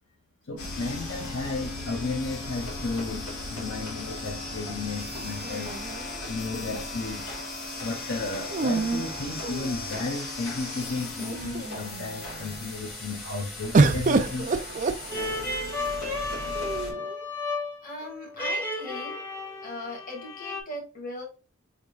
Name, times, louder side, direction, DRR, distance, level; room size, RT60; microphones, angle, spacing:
voice 1, 0.5-5.7 6.3-7.4 7.8-14.6, left 3 dB, 60° left, 1 dB, 0.7 m, -33 dB
sound 1, 0.6-16.9, left 2 dB, 80° left, 1.6 m, -37 dB
sound 2, 5.4-6.5 8.5-10.0 10.8-10.9 11.2-11.8 13.7-15.6 16.5-17.2, right 3 dB, 35° right, 0.4 m, -27 dB
sound 3, 15.1-20.6, left 2 dB, 10° left, 0.9 m, -33 dB
voice 2, 17.8-19.2 19.6-21.3, left 2 dB, 40° left, 1 dB, 1.6 m, -38 dB
4.6 x 3.6 x 2.4 m, 0.32 s
head